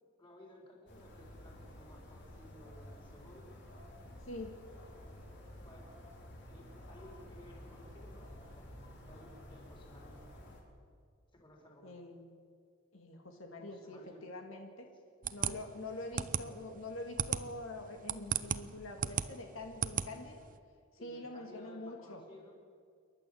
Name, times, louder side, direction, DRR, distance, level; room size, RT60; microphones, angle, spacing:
voice 1, 0.2-3.5 5.6-5.9 6.4-8.7 9.0-10.2 11.3-12.0 13.7-14.2 14.9-15.0 21.0-22.5, left 1 dB, 25° left, -1 dB, 4.7 m, -57 dB
sound 1, 0.9-10.6, left 1 dB, 60° left, 4.2 m, -52 dB
voice 2, 11.8-12.3 12.9-14.9 15.3-20.5 21.0-22.2, left 2 dB, 85° left, 3 dB, 2.2 m, -45 dB
sound 2, 15.2-20.6, right 8 dB, 40° right, 0.7 m, -36 dB
28.0 x 12.0 x 7.9 m, 2.2 s
head